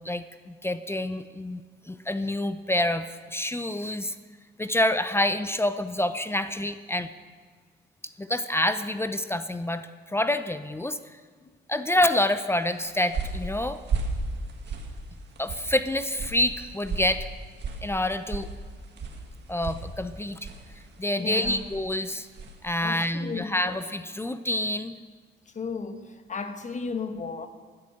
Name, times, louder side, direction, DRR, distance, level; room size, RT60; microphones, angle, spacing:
voice 1, 0.0-4.1 4.6-7.1 8.2-11.2 11.7-13.8 15.4-17.3 17.8-18.5 19.5-20.5 21.0-22.3 22.6-25.0, left 1 dB, 10° left, 0.6 m, -27 dB
sound 1, 12.6-22.7, right 3 dB, 60° right, 1.9 m, -36 dB
voice 2, 21.2-21.6 22.8-23.8 25.5-27.5, left 4 dB, 40° left, 1.3 m, -34 dB
14.0 x 8.6 x 7.9 m
cardioid pair, 90°, 20 cm